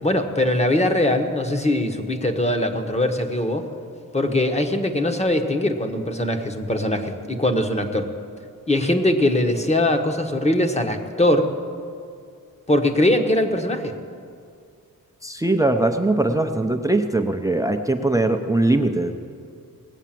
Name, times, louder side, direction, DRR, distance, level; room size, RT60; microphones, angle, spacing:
voice 1, 0.0-3.7 4.1-8.1 8.7-11.5 12.7-13.9, left 1 dB, 20° left, 5 dB, 1.2 m, -21 dB
voice 2, 15.2-19.3, right 2 dB, 10° right, 6 dB, 0.7 m, -21 dB
19.0 x 8.1 x 7.5 m, 2.3 s
wide cardioid pair, 105°, 35 cm